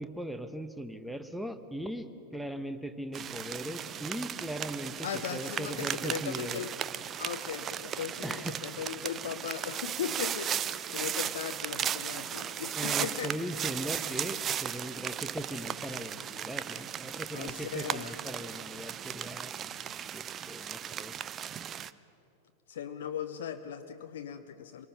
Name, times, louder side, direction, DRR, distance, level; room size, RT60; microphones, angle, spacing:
voice 1, 0.0-2.1 2.3-6.6 8.2-8.6 12.1-19.5 20.1-21.2, right 1 dB, ahead, 9 dB, 1.0 m, -39 dB
sound 1, 3.1-21.9, right 9 dB, 25° right, 0.5 m, -36 dB
voice 2, 5.0-6.7 7.1-13.3 17.3-18.1 22.7-24.9, left 9 dB, 60° left, 8 dB, 0.7 m, -38 dB
25.0 x 19.0 x 5.8 m, 2.9 s
figure-of-eight pair, 90°, 0 cm